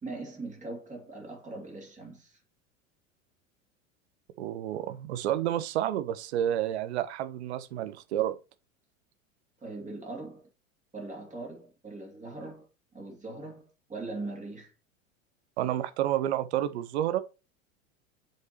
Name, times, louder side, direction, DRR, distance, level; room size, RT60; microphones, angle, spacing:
voice 1, 0.0-2.4 9.6-10.5 10.9-12.7 12.9-14.7, right 2 dB, 20° right, 2.8 m, -40 dB
voice 2, 4.4-8.4 15.6-17.2, right 12 dB, 55° right, 0.9 m, -30 dB
7.5 x 5.9 x 3.0 m
figure-of-eight pair, 80°, 40 cm